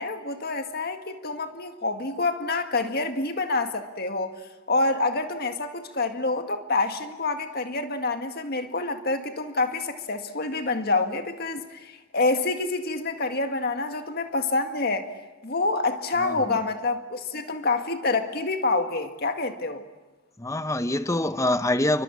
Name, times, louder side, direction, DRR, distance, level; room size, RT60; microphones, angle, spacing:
voice 1, 0.0-4.3 4.7-15.1 15.4-19.8, left 3 dB, 50° left, 1.9 m, -27 dB
voice 2, 16.2-16.6 20.4-22.0, left 1 dB, 15° left, 0.8 m, -25 dB
30.0 x 24.5 x 7.2 m
head